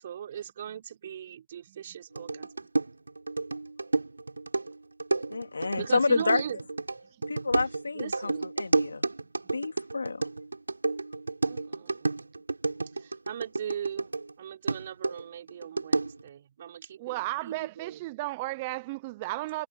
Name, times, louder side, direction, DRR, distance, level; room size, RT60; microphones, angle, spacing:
voice 1, 0.0-2.5 5.6-6.6 7.9-8.5 11.4-12.2 12.9-14.1 14.4-18.0, right 9 dB, 45° right, 4.9 m, -39 dB
sound 1, 2.2-14.3 14.7-16.3, right 3 dB, 90° right, 5.8 m, -31 dB
voice 2, 5.3-6.4 7.3-9.1 9.5-10.2, left 4 dB, 80° left, 2.6 m, -29 dB
voice 3, 5.9-6.2 7.1-7.2 17.0-19.7, right 21 dB, 25° right, 0.8 m, -34 dB
figure-of-eight pair, 150°, 0 cm